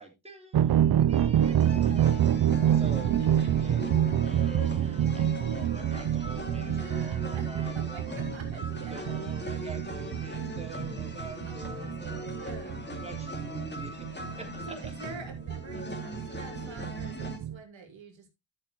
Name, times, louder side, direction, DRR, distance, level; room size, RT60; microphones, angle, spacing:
voice 1, 0.0-3.1 3.6-3.9 4.2-8.1 8.9-14.9, right 3 dB, 15° right, 3 dB, 3.4 m, -46 dB
sound 1, 0.5-17.6, right 10 dB, 55° right, 0.6 m, -28 dB
sound 2, 1.4-17.4, left 2 dB, 20° left, 2.5 m, -41 dB
voice 2, 3.2-3.9 4.8-5.0 6.6-9.2 11.4-12.9 14.3-14.4 14.7-18.3, right 5 dB, 70° right, 3 dB, 3.0 m, -47 dB
12.0 x 6.9 x 3.0 m, 0.23 s
cardioid pair, 70°, 47 cm